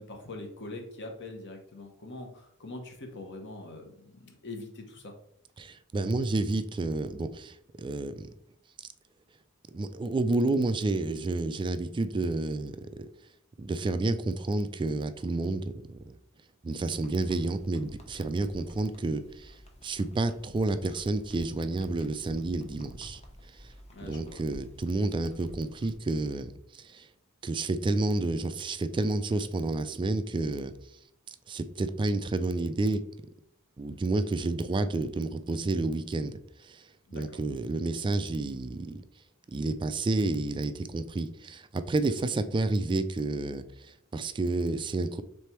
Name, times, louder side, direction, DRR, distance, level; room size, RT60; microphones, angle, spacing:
voice 1, 0.0-5.1 16.8-17.0 23.9-24.4 37.1-37.4, left 2 dB, 55° left, 3 dB, 1.1 m, -43 dB
voice 2, 5.6-8.3 9.7-13.1 13.6-16.2 16.6-23.2 23.5-23.7 24.0-27.1 27.4-30.7 31.3-33.0 33.8-39.0 39.5-45.2, right 2 dB, 20° right, 11 dB, 0.3 m, -30 dB
sound 1, 16.9-26.0, equal, 30° left, 0.8 m, -51 dB
3.4 x 3.3 x 4.3 m, 0.77 s
head